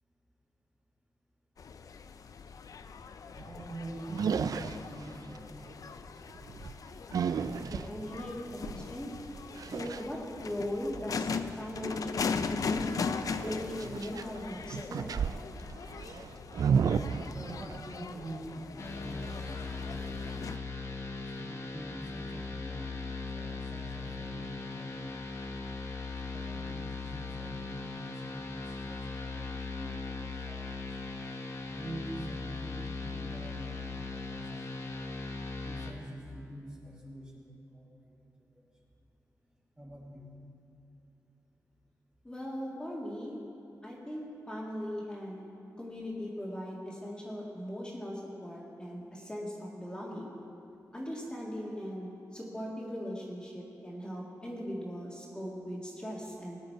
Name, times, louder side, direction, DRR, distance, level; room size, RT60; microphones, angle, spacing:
sound 1, 1.6-20.6, left 5 dB, 65° left, 0.5 m, -40 dB
sound 2, 3.4-3.7 4.1-5.4 6.3-10.0 12.9-14.4 14.7-17.9, right 6 dB, 75° right, 0.3 m, -33 dB
voice 1, 3.5-5.5 16.3-16.6 17.3-20.1 21.2-25.2 26.2-30.6 31.7-35.0 35.6-38.1 39.8-40.3, right 1 dB, 15° right, -4 dB, 2.2 m, -46 dB
voice 2, 7.7-9.1 9.7-15.1 42.2-43.4 43.8-45.5 45.8-50.4 50.9-56.6, equal, 15° left, -4 dB, 1.9 m, -39 dB
sound 3, 18.8-35.9, left 3 dB, 50° left, 1.1 m, -39 dB
18.5 x 9.3 x 4.6 m, 2.9 s
wide cardioid pair, 135°, 6 cm